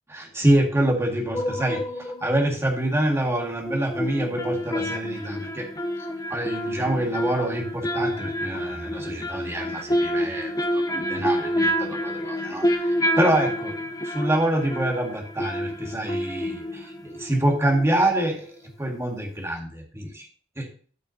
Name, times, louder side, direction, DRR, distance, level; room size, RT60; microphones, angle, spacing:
voice 1, 0.1-5.7 6.3-13.8 14.0-20.3 20.6-20.7, right 1 dB, 15° right, 1 dB, 1.9 m, -26 dB
sound 1, 1.3-2.5 3.6-18.2 18.4-18.5, equal, 20° left, 0.8 m, -28 dB
13.5 x 6.1 x 2.7 m, 0.43 s
head